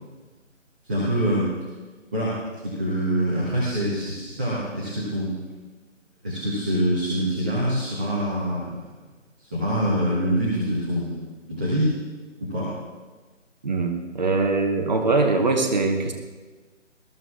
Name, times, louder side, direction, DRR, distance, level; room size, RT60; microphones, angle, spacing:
voice 1, 0.8-1.5 2.1-2.4 2.6-5.4 6.2-8.8 9.4-11.9 12.4-12.7, equal, 5° right, -8 dB, 0.8 m, -25 dB
voice 2, 13.6-16.1, right 3 dB, 35° right, 3 dB, 1.1 m, -22 dB
20.0 x 14.0 x 2.4 m, 1.3 s
figure-of-eight pair, 155°, 38 cm